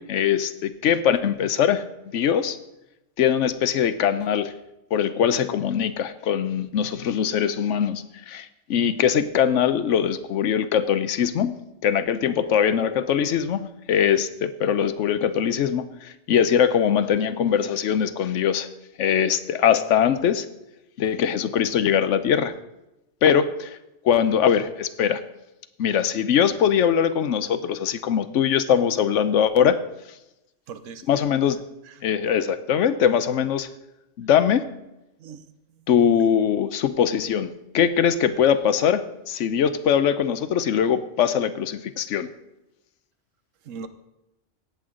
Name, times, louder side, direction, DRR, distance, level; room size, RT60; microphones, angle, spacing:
voice 1, 0.0-1.8 2.1-2.6 3.2-4.5 4.9-18.7 19.0-20.5 21.0-22.5 23.2-23.8 24.0-25.2 25.8-29.8 31.1-31.6 32.0-33.7 34.2-34.6 35.9-42.3, left 8 dB, 75° left, 12 dB, 1.0 m, -22 dB
voice 2, 30.7-31.0 31.8-32.0 35.2-35.4 35.8-35.9 43.6-43.9, right 5 dB, 85° right, 11 dB, 1.2 m, -39 dB
17.0 x 7.8 x 3.8 m, 0.94 s
omnidirectional pair, 1.3 m